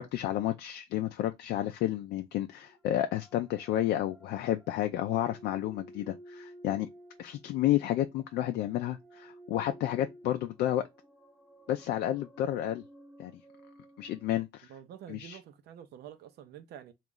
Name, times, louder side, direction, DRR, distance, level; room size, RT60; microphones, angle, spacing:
voice 1, 0.0-6.9 7.2-10.8 11.7-12.8 13.2-13.3 14.0-14.7 15.1-15.4, left 13 dB, 70° left, 0.4 m, -31 dB
sound 1, 2.6-14.4, right 1 dB, ahead, 0.5 m, -54 dB
voice 2, 14.7-16.9, right 10 dB, 75° right, 0.6 m, -48 dB
3.0 x 2.4 x 3.7 m
cardioid pair, 110°, 17 cm